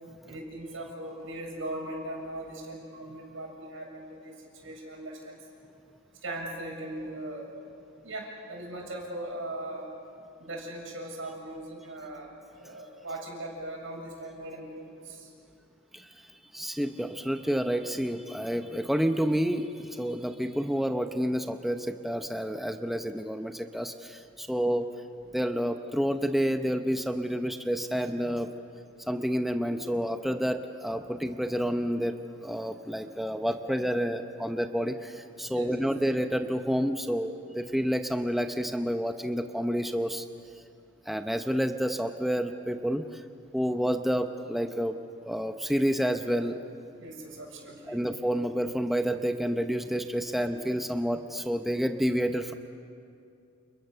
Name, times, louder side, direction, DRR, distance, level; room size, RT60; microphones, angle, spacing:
voice 1, 0.3-5.4 6.2-7.5 8.0-9.9 10.4-15.3 35.5-35.8 47.0-48.1, right 1 dB, 75° right, 0 dB, 7.5 m, -39 dB
voice 2, 16.5-24.9 25.3-28.5 29.1-32.2 32.4-40.2 41.1-43.2 43.5-44.9 45.2-46.6 47.9-52.5, equal, ahead, 6 dB, 0.8 m, -29 dB
30.0 x 29.5 x 6.8 m, 2.5 s
head